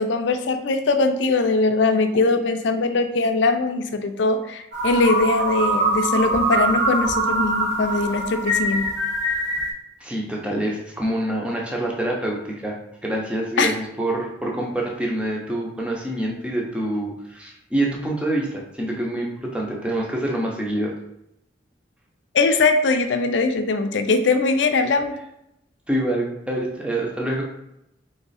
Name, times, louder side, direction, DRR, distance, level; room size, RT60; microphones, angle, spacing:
voice 1, 0.0-8.9 13.6-13.7 22.3-25.2, left 3 dB, 75° left, 7 dB, 0.5 m, -21 dB
sound 1, 4.7-9.7, right 1 dB, 70° right, 1.3 m, -23 dB
voice 2, 10.0-12.8 13.0-20.9 25.9-27.4, right 1 dB, 5° right, -2 dB, 0.7 m, -26 dB
3.6 x 3.2 x 4.0 m, 0.83 s
head